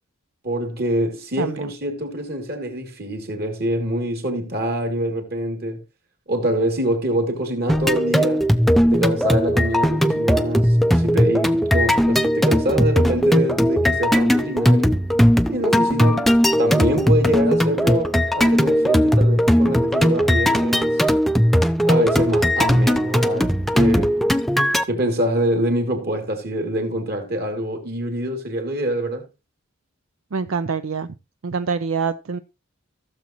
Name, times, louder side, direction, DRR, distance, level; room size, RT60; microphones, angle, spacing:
voice 1, 0.4-5.8 6.3-8.5 8.9-15.0 15.5-16.3 16.6-21.0 21.8-24.2 24.9-29.2, right 1 dB, 50° right, 2.7 m, -25 dB
voice 2, 1.4-1.7 30.3-31.1 31.4-32.4, right 5 dB, 75° right, 0.5 m, -25 dB
sound 1, 7.7-24.8, equal, ahead, 0.4 m, -18 dB
16.5 x 7.2 x 3.0 m
head